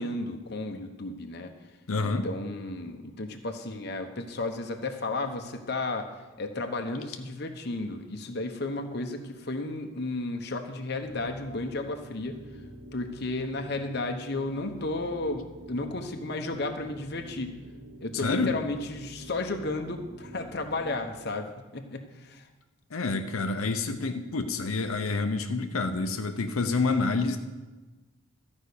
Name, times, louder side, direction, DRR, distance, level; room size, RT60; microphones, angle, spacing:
voice 1, 0.0-1.5 2.0-12.4 12.9-17.6 18.0-22.4, left 2 dB, 50° left, 4 dB, 1.0 m, -33 dB
voice 2, 1.9-2.3 18.2-18.5 22.9-27.4, left 3 dB, 85° left, 6 dB, 0.8 m, -28 dB
sound 1, 10.9-21.3, right 1 dB, 60° right, 1.5 m, -47 dB
13.5 x 5.4 x 8.4 m, 1.2 s
head